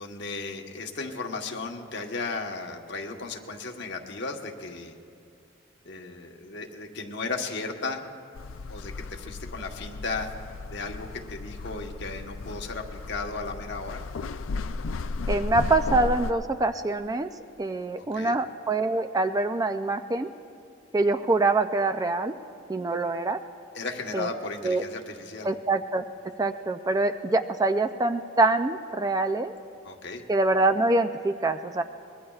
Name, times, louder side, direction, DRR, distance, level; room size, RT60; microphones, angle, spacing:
voice 1, 0.0-5.0 5.8-8.1 8.7-10.3 10.7-14.0 18.0-18.4 23.7-25.5 29.8-30.2, left 3 dB, 60° left, 2 dB, 1.2 m, -35 dB
sound 1, 8.4-16.3, left 3 dB, 75° left, 0.4 m, -34 dB
voice 2, 15.3-17.3 17.6-20.3 20.9-22.3 22.7-23.4 24.1-24.3 24.6-24.8 25.4-26.0 26.4-29.5 30.3-31.8, right 2 dB, 20° right, 8 dB, 0.3 m, -25 dB
24.0 x 21.5 x 2.4 m, 2.4 s
head